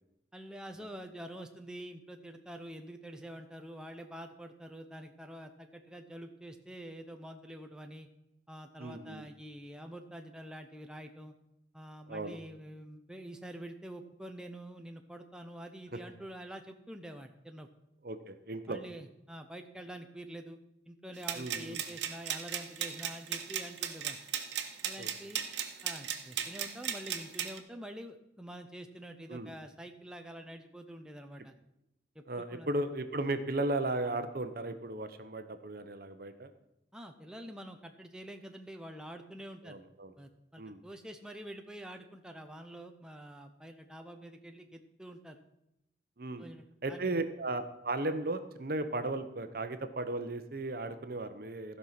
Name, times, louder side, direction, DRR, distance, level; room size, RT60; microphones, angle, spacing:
voice 1, 0.3-8.1 8.5-11.3 11.7-17.7 18.7-20.6 20.9-24.2 24.8-25.4 25.8-31.5 32.1-32.7 36.9-39.8 40.2-45.4 46.4-47.2, right 1 dB, 5° right, 4 dB, 0.6 m, -47 dB
voice 2, 8.8-9.3 12.1-12.4 18.0-18.8 21.3-21.8 25.0-25.1 29.3-29.5 32.3-36.5 39.6-40.1 40.6-40.8 46.2-46.4 46.8-51.8, right 2 dB, 55° right, 9 dB, 0.9 m, -36 dB
sound 1, 21.2-27.6, right 9 dB, 80° right, 1.1 m, -37 dB
15.5 x 5.5 x 5.9 m, 0.87 s
head